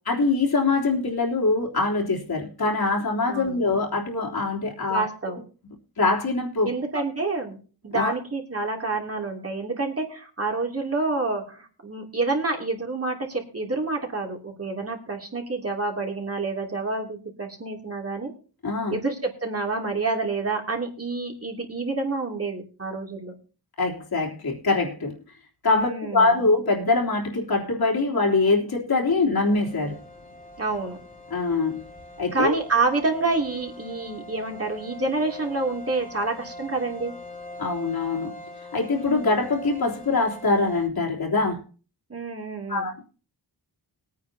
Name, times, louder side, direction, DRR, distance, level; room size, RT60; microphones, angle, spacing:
voice 1, 0.1-5.4 6.0-6.7 7.9-8.1 18.6-19.0 23.8-25.2 25.6-30.0 31.3-31.8 32.2-32.6 37.6-38.3 38.7-41.6 42.7-43.0, left 3 dB, 65° left, 3.5 m, -23 dB
voice 2, 4.9-5.4 6.6-7.6 7.8-18.3 18.9-23.3 25.7-26.4 30.6-31.0 32.3-37.1 42.1-42.9, right 3 dB, 35° right, 2.9 m, -28 dB
sound 1, 29.4-40.9, left 1 dB, 20° left, 2.6 m, -42 dB
21.5 x 9.3 x 2.8 m
wide cardioid pair, 120°, 40 cm